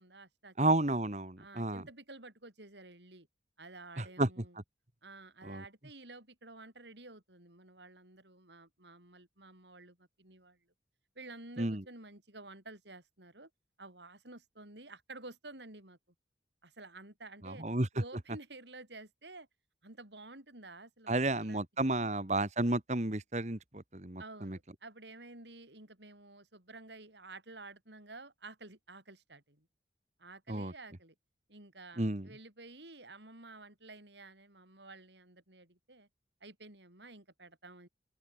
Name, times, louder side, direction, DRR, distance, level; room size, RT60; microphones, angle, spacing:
voice 1, 0.0-0.5 1.4-3.3 3.6-4.6 5.0-10.6 11.2-13.5 13.8-16.0 16.6-17.6 17.9-19.5 19.8-21.7 24.2-29.7 30.2-31.1 31.5-36.1 36.4-37.9, right 2 dB, 75° right, 7.2 m, -51 dB
voice 2, 0.6-1.8 4.0-4.3 5.4-5.6 11.6-11.8 17.4-17.9 21.1-24.6 30.5-30.7 32.0-32.3, right 2 dB, 40° right, 1.7 m, -32 dB
open air
head